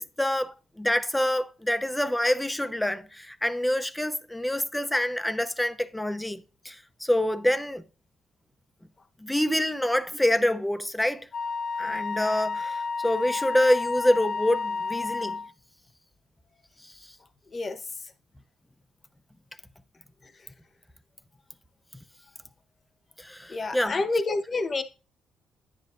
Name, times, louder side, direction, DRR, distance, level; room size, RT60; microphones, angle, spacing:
voice 1, 0.2-7.8 9.2-11.3 11.8-15.4 16.8-16.9 23.2-24.0, left 1 dB, 5° left, 0.7 m, -26 dB
Wind instrument woodwind instrument, 11.3-15.5, left 4 dB, 55° left, 0.8 m, -31 dB
voice 2, 23.5-24.8, left 3 dB, 35° left, 1.1 m, -28 dB
10.0 x 9.7 x 2.6 m
cardioid pair, 90°, 0 cm